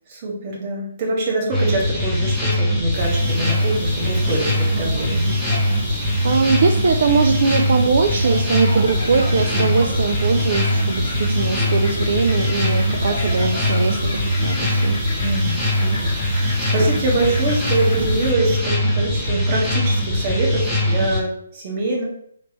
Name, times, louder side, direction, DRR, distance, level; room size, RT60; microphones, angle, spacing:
voice 1, 0.1-5.3 15.2-22.0, right 2 dB, 35° right, -1 dB, 1.1 m, -24 dB
sound 1, 1.5-21.2, left 1 dB, 5° right, 0.8 m, -21 dB
sound 2, 2.9-18.3, right 1 dB, 85° right, 1.2 m, -33 dB
voice 2, 5.9-15.0, right 5 dB, 55° right, 5 dB, 0.3 m, -21 dB
sound 3, 8.5-21.0, left 2 dB, 45° left, 0.9 m, -37 dB
3.2 x 3.0 x 2.9 m, 0.66 s
hypercardioid pair, 155°, 0 cm